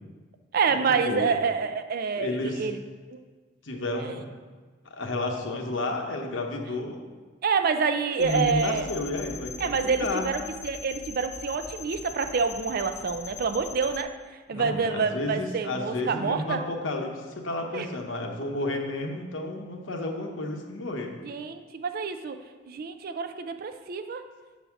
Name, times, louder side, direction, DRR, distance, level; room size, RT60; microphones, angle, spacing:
voice 1, 0.5-2.8 3.1-3.2 4.0-4.1 7.4-8.9 9.6-14.1 14.5-16.6 17.7-17.9 21.2-22.4 22.7-24.2, right 5 dB, 50° right, 8 dB, 0.4 m, -27 dB
voice 2, 2.2-2.7 3.6-4.2 4.8-7.0 8.2-10.2 14.5-21.1, left 2 dB, 80° left, 2 dB, 1.0 m, -31 dB
sound 1, 8.2-14.0, left 5 dB, 35° left, 0.4 m, -41 dB
7.1 x 4.1 x 5.7 m, 1.4 s
head